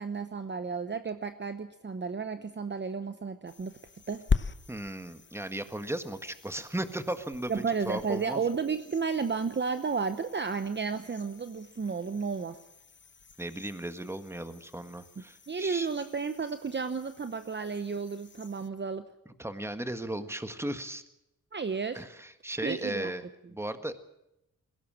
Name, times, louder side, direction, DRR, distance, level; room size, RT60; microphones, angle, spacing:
voice 1, 0.0-3.8 4.1-4.2 7.5-12.6 15.5-19.1 21.5-22.0 22.6-23.1, right 5 dB, 35° right, 10 dB, 0.9 m, -32 dB
sound 1, 3.5-18.7, left 5 dB, 35° left, 1.0 m, -41 dB
voice 2, 4.7-7.5 7.8-8.4 13.4-15.9 19.4-21.0 21.9-24.0, right 1 dB, 10° right, 9 dB, 1.6 m, -36 dB
21.5 x 17.0 x 7.6 m, 0.83 s
wide cardioid pair, 115°, 33 cm